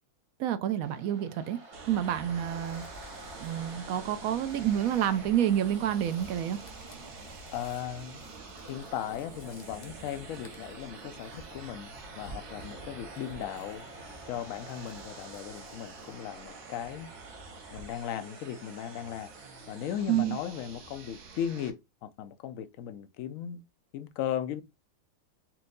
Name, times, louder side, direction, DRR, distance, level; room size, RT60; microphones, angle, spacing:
voice 1, 0.4-1.6 1.9-2.8 3.4-6.6 20.1-20.4, right 11 dB, 70° right, 0.9 m, -28 dB
Waves surf, 0.8-20.6, right 2 dB, 50° right, 1.4 m, -50 dB
sound 1, 1.7-21.7, right 4 dB, 90° right, 1.5 m, -48 dB
sound 2, 1.9-16.4, equal, 40° left, 0.6 m, -53 dB
voice 2, 7.5-8.2 8.6-13.9 14.3-17.1 17.7-19.3 19.7-23.6 23.9-24.6, left 10 dB, 70° left, 0.9 m, -37 dB
4.4 x 2.7 x 3.7 m
omnidirectional pair, 1.6 m